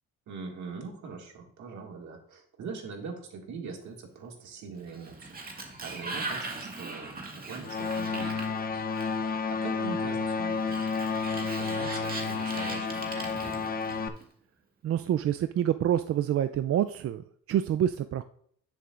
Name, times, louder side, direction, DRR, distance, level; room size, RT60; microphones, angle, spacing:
voice 1, 0.3-8.8 9.2-10.9 11.3-13.9, right 4 dB, 70° right, 1 dB, 2.1 m, -42 dB
Sliding door, 4.8-9.4 10.5-14.2, right 3 dB, 30° right, 1.8 m, -40 dB
sound 1, 7.6-14.1, left 5 dB, 30° left, 0.7 m, -31 dB
voice 2, 14.8-18.2, right 10 dB, 50° right, 11 dB, 0.4 m, -27 dB
10.5 x 6.9 x 2.5 m, 0.62 s
cardioid pair, 90°, 30 cm